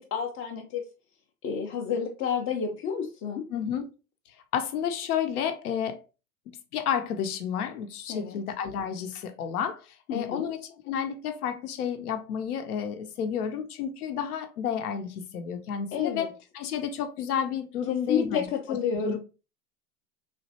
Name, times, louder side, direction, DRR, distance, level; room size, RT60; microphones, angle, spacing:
voice 1, 0.1-0.8 1.4-3.5 8.1-8.4 10.1-10.5 15.9-16.3 17.9-19.2, left 7 dB, 35° left, 0.4 m, -30 dB
voice 2, 3.5-3.9 4.5-6.0 6.5-18.8 19.0-19.2, left 8 dB, 80° left, 0.6 m, -31 dB
3.1 x 2.5 x 2.7 m
hypercardioid pair, 95°, 44 cm